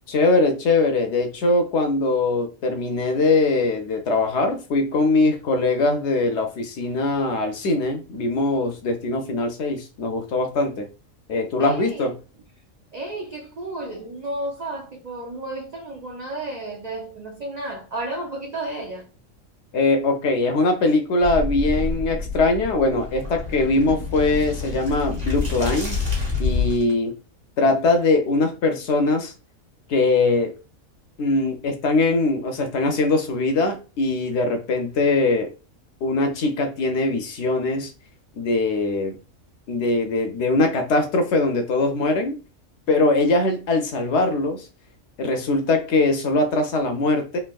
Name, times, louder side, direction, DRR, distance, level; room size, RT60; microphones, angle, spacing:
voice 1, 0.1-10.9 11.3-12.1 19.7-26.1 26.4-27.1 27.6-29.3 29.9-30.5 31.2-35.5 36.0-37.9 38.4-39.2 39.7-42.4 42.9-44.7 45.2-47.4, left 2 dB, 65° left, 0.8 m, -21 dB
voice 2, 11.6-12.1 12.9-19.1, right 2 dB, 70° right, 0.3 m, -32 dB
sound 1, 21.2-26.9, left 4 dB, 30° right, 1.4 m, -27 dB
3.4 x 2.7 x 2.3 m
omnidirectional pair, 1.4 m